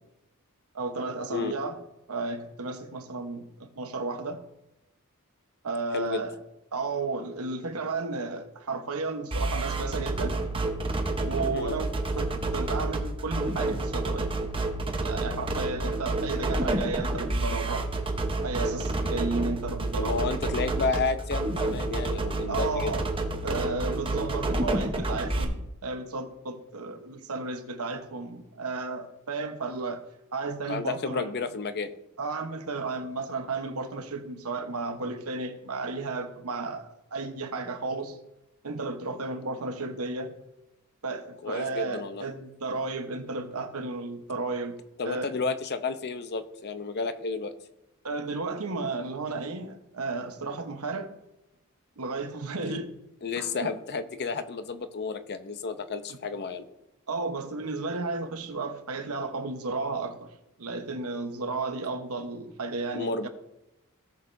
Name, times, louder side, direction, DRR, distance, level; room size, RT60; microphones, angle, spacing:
voice 1, 0.7-1.8 2.1-4.4 5.6-6.3 6.7-10.4 11.2-14.3 15.0-17.9 18.4-20.4 22.5-23.1 23.4-30.0 30.3-31.3 32.2-38.2 38.6-40.3 41.0-44.8 45.0-45.3 48.0-51.1 52.0-52.9 53.4-53.7 57.1-60.3 60.6-63.3, right 3 dB, 75° right, 1.0 m, -33 dB
sound 1, 9.3-25.4, right 2 dB, 25° right, 0.9 m, -29 dB
voice 2, 20.0-22.9 30.7-31.9 41.4-42.2 45.0-47.5 52.6-52.8 53.2-56.6 62.9-63.3, left 4 dB, 50° left, 0.7 m, -31 dB
17.0 x 6.5 x 2.6 m
head